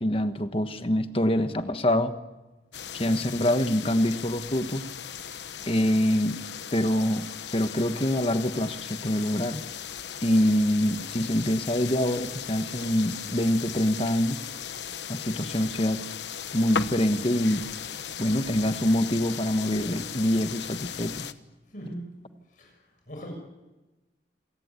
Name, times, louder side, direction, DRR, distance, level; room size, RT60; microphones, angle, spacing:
voice 1, 0.0-2.1 2.9-4.9 5.7-6.4 6.7-7.3 7.5-9.6 10.2-14.4 15.1-16.0 16.5-17.6 18.2-21.2, left 1 dB, 30° left, 9 dB, 1.4 m, -25 dB
sound 1, 2.7-21.3, left 8 dB, 85° left, 1.1 m, -37 dB
voice 2, 21.7-22.1 22.5-23.3, equal, 50° left, 2 dB, 6.8 m, -40 dB
27.5 x 18.0 x 9.8 m, 1.1 s
head